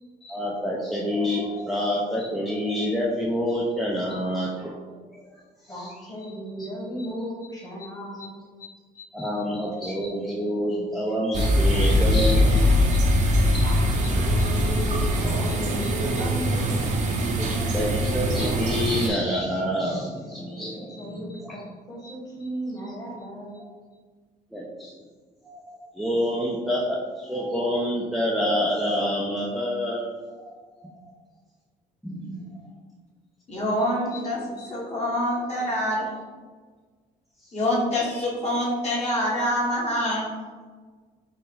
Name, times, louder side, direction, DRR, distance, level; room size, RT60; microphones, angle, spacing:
voice 1, 0.2-4.8 5.2-5.3 5.6-5.7 9.1-12.4 13.5-13.6 17.4-21.6 24.5-24.9 25.4-30.0 30.3-30.5 30.8-31.0 32.0-32.4, equal, ahead, -5 dB, 0.5 m, -27 dB
voice 2, 5.7-8.3 8.6-9.1 9.7-9.8 13.3-17.3 20.5-20.6 20.9-23.6 33.8-34.7, equal, 20° left, -3 dB, 1.4 m, -36 dB
sound 1, 11.3-19.1, equal, 45° right, 0.7 m, -22 dB
voice 3, 33.5-34.4 34.7-36.1 37.5-40.3, equal, 40° left, -4 dB, 1.4 m, -25 dB
4.1 x 2.7 x 3.8 m, 1.5 s
cardioid pair, 110°, 17 cm